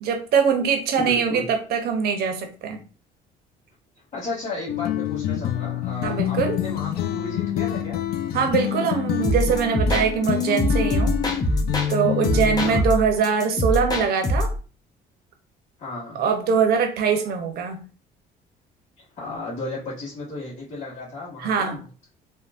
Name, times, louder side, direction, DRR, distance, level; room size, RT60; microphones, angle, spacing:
voice 1, 0.0-2.8 6.0-6.6 8.3-11.1 11.9-14.5 16.1-17.8 21.4-21.8, right 6 dB, 70° right, 5 dB, 0.7 m, -22 dB
voice 2, 1.0-1.5 4.1-8.0 12.6-12.9 15.8-16.2 19.2-21.8, left 2 dB, 40° left, -9 dB, 1.6 m, -34 dB
sound 1, 4.7-12.8, left 11 dB, 65° left, 0.4 m, -27 dB
sound 2, 9.2-11.9 12.2-14.6, left 1 dB, 20° left, 0.8 m, -24 dB
3.6 x 2.2 x 2.5 m, 0.35 s
cardioid pair, 110°, 17 cm